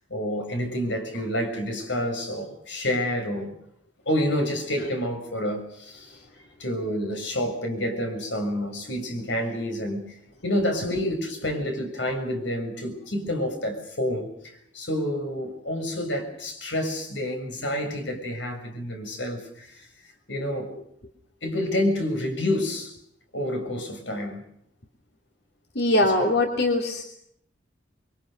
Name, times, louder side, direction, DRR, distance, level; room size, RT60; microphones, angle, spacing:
voice 1, 0.1-3.5 4.0-6.2 6.6-10.1 10.4-19.9 20.3-20.7 21.4-22.9 23.3-24.4 26.2-26.3, left 1 dB, 85° left, 6.6 m, -28 dB
voice 2, 25.7-27.0, left 1 dB, 60° left, 2.9 m, -22 dB
28.5 x 23.5 x 6.6 m
head